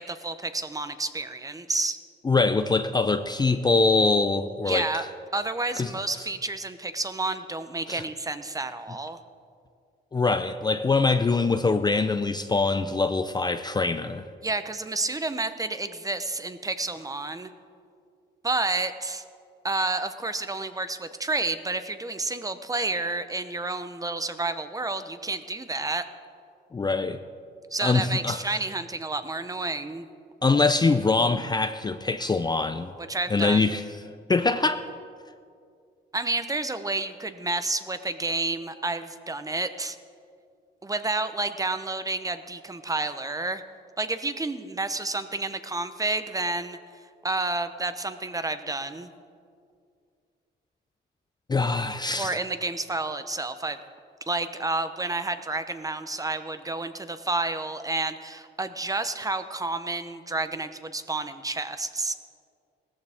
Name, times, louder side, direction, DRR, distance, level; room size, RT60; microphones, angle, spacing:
voice 1, 0.0-2.0 4.7-5.1 5.3-9.2 14.4-17.5 18.4-19.2 19.6-26.0 27.7-30.1 33.0-33.7 36.1-40.0 40.8-43.6 44.0-46.8 47.2-49.1 52.2-53.8 54.3-62.1, right 2 dB, 15° right, 10 dB, 0.8 m, -30 dB
voice 2, 2.2-5.1 5.8-5.9 7.9-8.0 10.1-14.2 26.7-27.2 27.8-28.4 30.4-32.9 33.3-33.8 34.3-34.8 51.5-52.4, left 3 dB, 20° left, 9 dB, 0.5 m, -23 dB
17.5 x 14.0 x 3.6 m, 2.2 s
cardioid pair, 90°, 20 cm